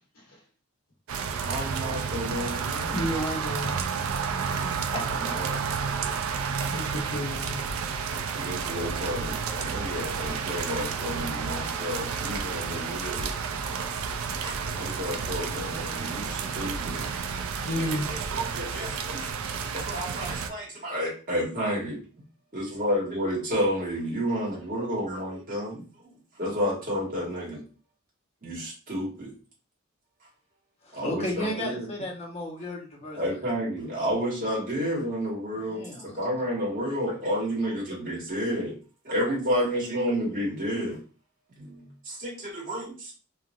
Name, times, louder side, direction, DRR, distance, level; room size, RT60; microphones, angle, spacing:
sound 1, 1.1-20.5, right 6 dB, 80° right, 0.4 m, -31 dB
voice 1, 1.4-3.1 5.0-5.5 8.3-13.3 14.4-17.1 17.7-19.3 19.7-22.0 22.5-25.8 26.4-27.6 28.4-29.3 30.9-31.9 33.1-38.7 39.0-41.0 41.6-43.1, equal, 45° right, -5 dB, 1.5 m, -31 dB
voice 2, 2.9-3.8 4.8-5.1 6.7-7.9 17.7-18.1, equal, 80° left, -6 dB, 1.0 m, -31 dB
voice 3, 30.9-33.2 35.6-36.2, left 1 dB, 30° left, -1 dB, 0.8 m, -34 dB
3.1 x 2.4 x 2.5 m, 0.36 s
head